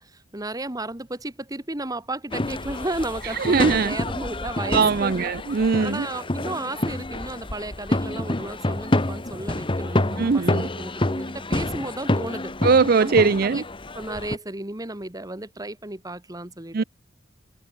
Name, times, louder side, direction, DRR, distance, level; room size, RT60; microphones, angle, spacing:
voice 1, 0.0-5.3 5.8-12.5 13.0-13.6 14.0-16.8, right 2 dB, 20° right, 2.0 m, -33 dB
sound 1, 2.3-14.4, left 1 dB, 25° left, 1.3 m, -28 dB
voice 2, 3.4-4.0 4.6-6.1 10.2-10.7 12.6-13.6 16.7-16.8, right 5 dB, 50° right, 0.5 m, -20 dB
head